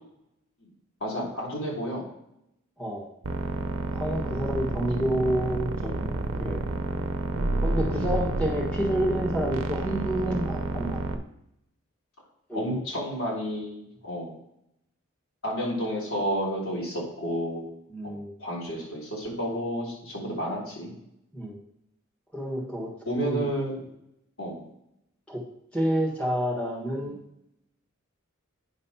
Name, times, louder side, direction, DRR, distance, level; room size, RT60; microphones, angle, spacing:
voice 1, 1.0-2.1 4.3-4.4 7.9-8.1 12.5-14.3 15.4-17.7 18.0-18.1 18.4-20.9 23.0-23.8 24.4-24.6 27.0-27.1, equal, 85° left, -5 dB, 3.2 m, -31 dB
voice 2, 2.8-3.1 3.9-6.1 6.4-6.6 7.6-11.0 12.5-12.8 17.9-18.3 21.3-21.6 22.3-22.9 23.2-23.5 25.3-25.4 25.7-27.2, equal, 5° left, -4 dB, 1.4 m, -29 dB
sound 1, 3.2-11.2, right 2 dB, 70° right, 0.6 m, -29 dB
9.2 x 3.2 x 5.6 m, 0.79 s
head